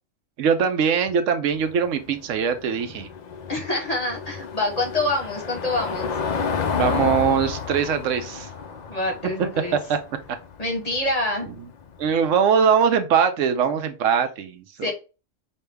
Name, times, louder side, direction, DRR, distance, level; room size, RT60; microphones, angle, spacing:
voice 1, 0.4-3.1 6.8-8.5 9.7-10.0 12.0-14.9, right 7 dB, 80° right, 8 dB, 1.0 m, -21 dB
Car passing by / Engine, 1.5-12.2, left 6 dB, 75° left, 0.4 m, -31 dB
voice 2, 3.5-6.1 8.9-9.8 10.6-11.5 14.8-14.9, left 2 dB, 35° left, 2 dB, 0.8 m, -26 dB
5.4 x 2.2 x 3.3 m, 0.32 s
omnidirectional pair, 1.3 m